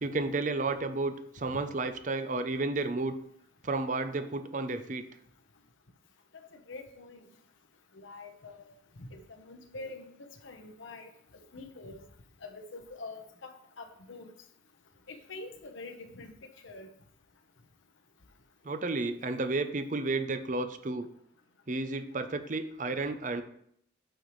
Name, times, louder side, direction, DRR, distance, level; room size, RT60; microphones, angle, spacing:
voice 1, 0.0-3.1 3.6-5.0 18.6-21.1 21.7-23.4, right 3 dB, 40° right, 9 dB, 0.6 m, -32 dB
voice 2, 6.7-7.2 7.9-8.7 9.0-9.2 9.5-10.0 10.4-11.1 11.5-12.0 12.4-14.3 15.3-16.3 16.6-16.9, left 3 dB, 85° left, 5 dB, 1.0 m, -45 dB
9.0 x 6.7 x 3.2 m, 0.68 s
head